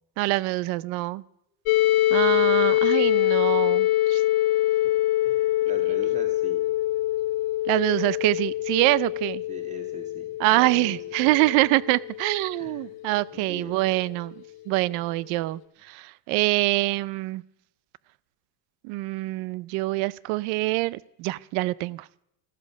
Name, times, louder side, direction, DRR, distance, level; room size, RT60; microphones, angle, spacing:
voice 1, 0.2-1.2 2.1-4.2 7.7-9.4 10.4-17.4 18.8-22.1, right 20 dB, 50° right, 22 dB, 0.5 m, -25 dB
sound 1, 1.7-13.4, left 15 dB, 45° left, 1.3 m, -24 dB
voice 2, 5.2-6.7 9.5-10.2 10.5-11.0 12.5-13.0 13.3-13.8, right 1 dB, 15° right, 5 dB, 2.3 m, -42 dB
15.5 x 13.5 x 6.4 m, 0.79 s
cardioid pair, 170°, 49 cm